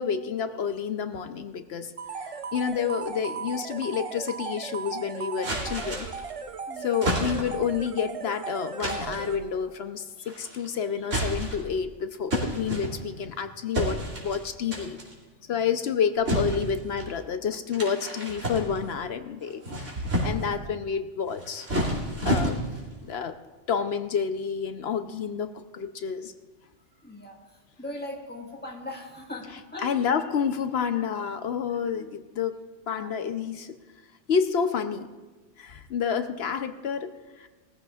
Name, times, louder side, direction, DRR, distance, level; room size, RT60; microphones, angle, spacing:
voice 1, 0.0-6.1 6.8-15.0 15.5-19.6 20.2-21.7 22.2-22.6 23.0-23.4 23.7-26.3 29.8-33.8 34.3-35.1 35.6-37.5, left 7 dB, 65° left, 9 dB, 0.9 m, -29 dB
sound 1, 2.0-9.7, right 5 dB, 45° right, 0.4 m, -37 dB
sound 2, 5.4-6.3 7.0-7.7 8.8-9.3 10.3-10.7 11.0-11.8 12.3-13.3 13.7-14.4 14.7-15.1 16.3-17.1 17.7-19.0 19.5-20.6 21.3-22.9, equal, 85° right, 2.9 m, -30 dB
voice 2, 6.7-7.1 20.3-20.6 27.0-27.4 27.8-30.0 31.9-32.1 32.9-33.1, left 1 dB, 10° left, 0 dB, 1.6 m, -40 dB
19.5 x 14.5 x 2.4 m, 1.2 s
omnidirectional pair, 1.2 m